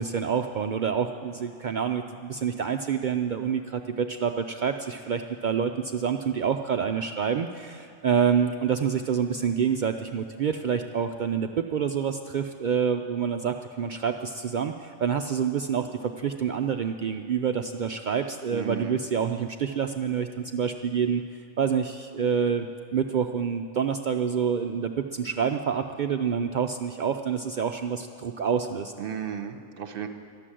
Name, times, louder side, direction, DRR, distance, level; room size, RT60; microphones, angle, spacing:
voice 1, 0.0-21.2 21.6-22.7 22.9-28.9, right 7 dB, 80° right, 6 dB, 0.4 m, -27 dB
voice 2, 18.5-19.0 29.0-30.1, right 8 dB, 50° right, 7 dB, 0.9 m, -34 dB
13.0 x 7.6 x 9.9 m, 2.5 s
omnidirectional pair, 1.4 m